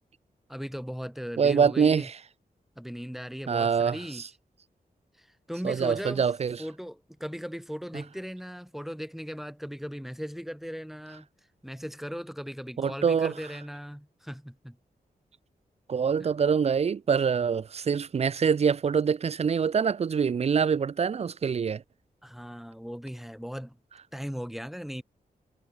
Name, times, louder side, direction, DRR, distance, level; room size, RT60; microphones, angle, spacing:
voice 1, 0.5-2.1 2.8-4.3 5.2-6.2 6.6-11.3 11.6-14.8 16.2-16.3 22.2-23.8 24.1-25.0, equal, ahead, 0.7 m, -38 dB
voice 2, 1.4-2.2 3.5-4.0 5.6-6.6 12.8-13.3 15.9-21.8, right 6 dB, 45° right, 0.4 m, -25 dB
wide cardioid pair, 135°, 16 cm